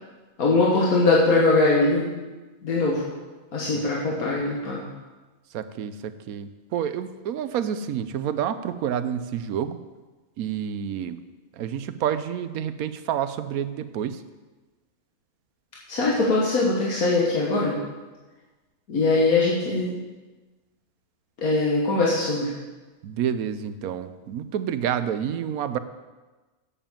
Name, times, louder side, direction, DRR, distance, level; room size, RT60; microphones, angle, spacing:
voice 1, 0.4-2.1 2.6-3.0 3.5-4.8 15.9-17.8 18.9-20.0 21.4-22.5, left 2 dB, 85° left, -5 dB, 2.0 m, -21 dB
voice 2, 5.5-9.8 10.4-11.2 11.6-14.2 23.0-25.8, right 9 dB, 85° right, 12 dB, 1.1 m, -29 dB
8.6 x 7.1 x 7.2 m, 1.2 s
omnidirectional pair, 1.5 m